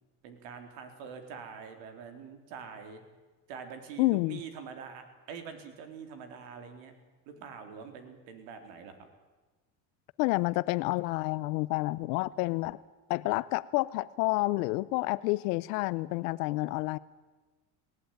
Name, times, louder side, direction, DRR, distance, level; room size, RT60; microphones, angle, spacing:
voice 1, 0.2-3.0 3.5-6.9 7.3-9.0, right 6 dB, 75° right, 7 dB, 4.0 m, -45 dB
voice 2, 4.0-4.4 10.2-12.8 13.1-17.0, left 21 dB, 90° left, 17 dB, 0.8 m, -29 dB
19.0 x 17.5 x 9.1 m, 1.3 s
supercardioid pair, 115°, 45 cm